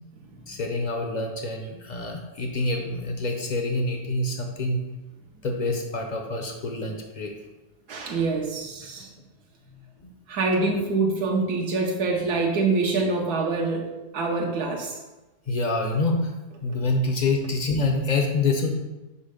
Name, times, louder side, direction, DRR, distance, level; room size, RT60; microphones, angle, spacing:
voice 1, 0.5-4.8 5.4-7.3 10.0-10.1 15.5-16.3 16.6-18.8, left 2 dB, 55° left, 2 dB, 0.5 m, -26 dB
voice 2, 7.9-9.1 10.3-13.9 14.1-15.0, right 3 dB, 80° right, 0 dB, 1.4 m, -25 dB
5.4 x 4.2 x 5.0 m, 1.1 s
omnidirectional pair, 1.7 m